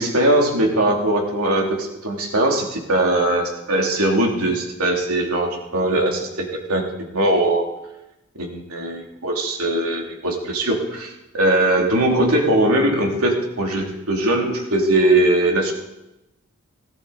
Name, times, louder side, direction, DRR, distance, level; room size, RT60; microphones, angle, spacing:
voice 1, 0.0-6.8 7.1-7.6 8.4-15.7, right 1 dB, 85° right, 0 dB, 2.9 m, -20 dB
18.5 x 13.0 x 4.2 m, 0.92 s
head